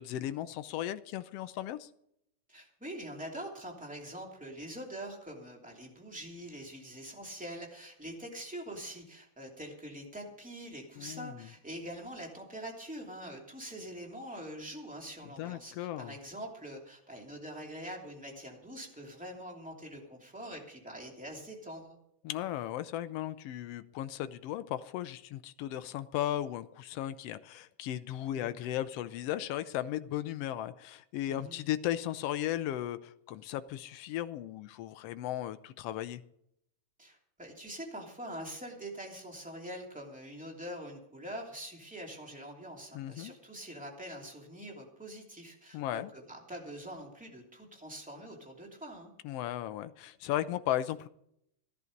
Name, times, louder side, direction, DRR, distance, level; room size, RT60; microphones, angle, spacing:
voice 1, 0.0-1.9 11.0-11.5 15.4-16.1 22.2-36.2 42.9-43.3 45.7-46.1 49.2-51.1, left 12 dB, 80° left, 12 dB, 1.4 m, -36 dB
voice 2, 2.5-22.0 28.3-28.5 31.3-31.6 37.0-49.1, right 1 dB, 5° right, 0 dB, 2.5 m, -44 dB
15.5 x 11.0 x 5.2 m, 0.74 s
omnidirectional pair, 3.4 m